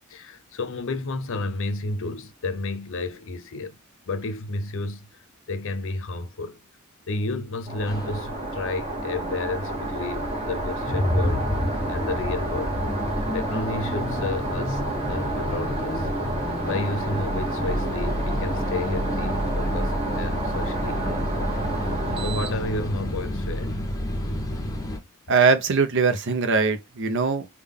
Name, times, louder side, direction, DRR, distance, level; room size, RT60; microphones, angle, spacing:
voice 1, 0.1-3.8 4.1-6.6 7.1-11.4 11.9-12.8 13.3-16.1 16.6-21.5 21.8-23.8, left 2 dB, 60° left, 0.5 m, -32 dB
sound 1, 7.7-23.2, right 2 dB, 30° right, 1.1 m, -30 dB
Ship Lift, 7.9-25.0, equal, 15° left, 0.6 m, -30 dB
voice 2, 25.3-27.5, right 4 dB, 60° right, 0.7 m, -21 dB
3.6 x 2.3 x 3.6 m
head